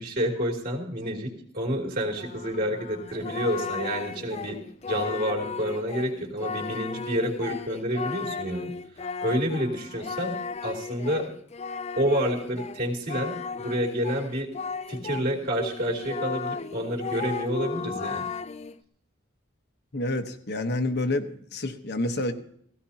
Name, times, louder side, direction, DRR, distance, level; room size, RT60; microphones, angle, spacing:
voice 1, 0.0-4.6 4.9-8.7 9.2-11.2 12.0-14.5 14.9-18.2, equal, 45° right, -2 dB, 3.4 m, -29 dB
Singing, 2.1-15.3 15.6-18.8, left 5 dB, 35° left, 0.5 m, -35 dB
voice 2, 19.9-22.3, left 2 dB, 55° left, 6 dB, 1.2 m, -28 dB
17.0 x 16.5 x 2.9 m, 0.64 s
head